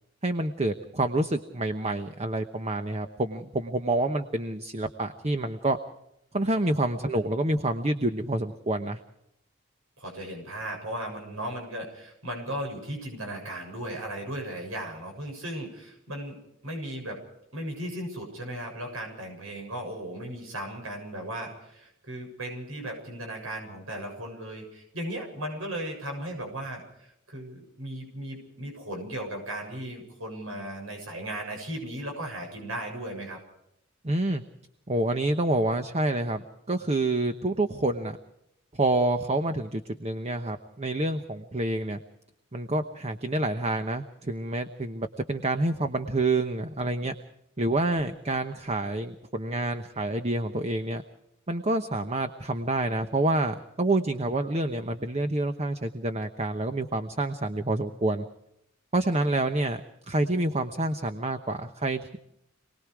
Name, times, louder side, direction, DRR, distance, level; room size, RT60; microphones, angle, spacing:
voice 1, 0.2-5.8 6.3-9.0 34.0-34.4 34.9-38.2 38.7-42.0 42.5-47.1 47.6-51.0 51.5-58.3 58.9-59.8 60.1-62.2, right 2 dB, 30° right, 8 dB, 1.0 m, -28 dB
voice 2, 10.0-16.4 16.6-17.2 17.5-33.4, right 1 dB, 75° right, 3 dB, 7.3 m, -36 dB
27.5 x 20.0 x 4.8 m, 0.79 s
head